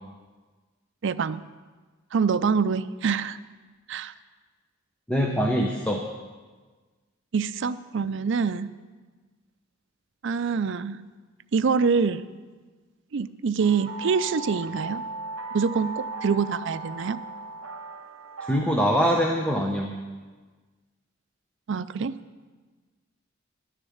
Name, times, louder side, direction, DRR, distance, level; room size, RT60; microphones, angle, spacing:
voice 1, 1.0-1.4 2.1-3.4 3.9-4.1 7.3-8.8 10.2-11.0 11.5-12.2 13.1-15.0 15.5-17.2 21.7-22.1, right 5 dB, 65° right, 12 dB, 0.4 m, -25 dB
voice 2, 5.1-6.0 18.5-19.9, equal, 5° left, 1 dB, 0.8 m, -23 dB
sound 1, 13.6-19.1, right 3 dB, 85° right, 0.9 m, -37 dB
11.0 x 6.7 x 8.6 m, 1.4 s
head